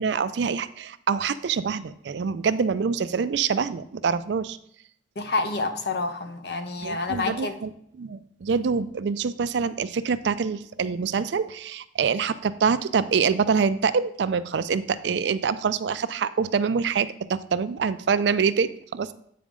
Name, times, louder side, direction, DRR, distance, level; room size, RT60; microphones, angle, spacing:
voice 1, 0.0-4.6 6.8-7.7 8.0-19.1, right 5 dB, 70° right, 13 dB, 0.4 m, -25 dB
voice 2, 5.2-7.6, left 3 dB, 60° left, 7 dB, 0.7 m, -28 dB
8.5 x 5.1 x 3.7 m, 0.69 s
head